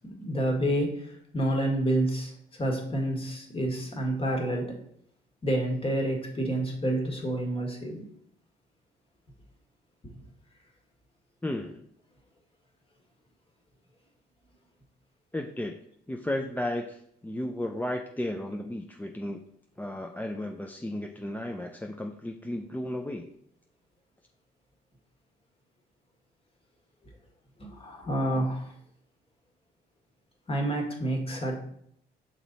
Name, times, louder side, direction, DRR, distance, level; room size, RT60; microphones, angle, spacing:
voice 1, 0.2-4.8 5.4-8.1 27.6-28.7 30.5-31.6, right 1 dB, 30° left, 1 dB, 1.7 m, -29 dB
voice 2, 11.4-11.8 15.3-15.7 16.1-19.4 19.8-23.3, left 1 dB, 10° left, 3 dB, 0.4 m, -34 dB
6.0 x 4.2 x 4.0 m, 0.68 s
cardioid pair, 90°, 20 cm